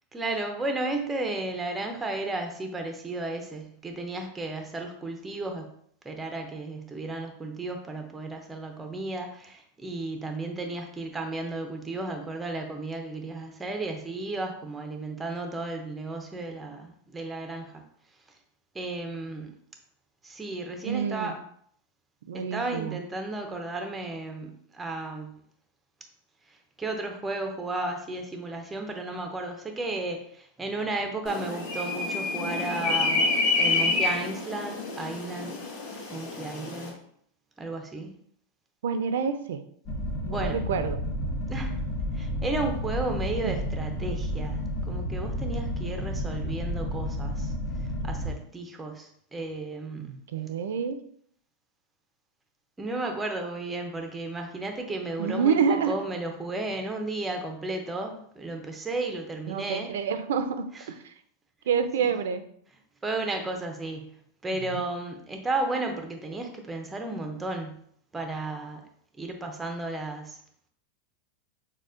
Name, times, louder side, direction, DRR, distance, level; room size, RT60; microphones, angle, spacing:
voice 1, 0.1-5.7 6.0-17.8 18.7-19.5 20.2-21.4 22.3-25.4 26.8-33.3 33.6-35.6 36.1-36.9 37.6-38.1 40.3-40.6 41.5-41.8 42.1-44.6 44.9-47.5 48.0-50.1 52.8-59.9 63.0-64.1 64.4-67.8 68.1-68.8 69.2-70.4, right 2 dB, 10° right, 4 dB, 0.4 m, -33 dB
voice 2, 20.8-21.3 22.3-23.0 38.8-39.6 40.3-41.0 43.4-43.7 50.0-51.0 55.2-56.0 59.5-61.1 61.7-62.5 64.7-64.8, right 6 dB, 85° right, 9 dB, 0.4 m, -28 dB
sound 1, 31.2-36.9, left 3 dB, 55° left, 1.4 m, -28 dB
sound 2, 39.8-48.3, equal, 30° left, 1.5 m, -31 dB
6.4 x 2.1 x 2.4 m, 0.65 s
supercardioid pair, 170°, 0 cm